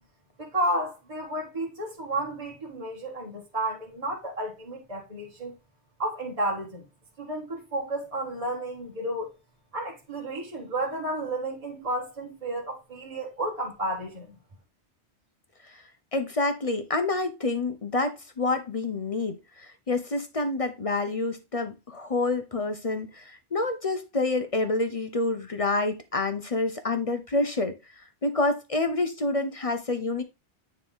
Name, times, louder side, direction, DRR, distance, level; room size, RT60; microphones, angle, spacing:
voice 1, 0.4-5.5 6.0-6.8 7.2-9.3 9.7-14.4, right 1 dB, 30° right, 1.6 m, -32 dB
voice 2, 16.1-27.8 28.2-30.2, left 2 dB, 35° left, 0.7 m, -28 dB
9.4 x 3.4 x 3.6 m
omnidirectional pair, 1.2 m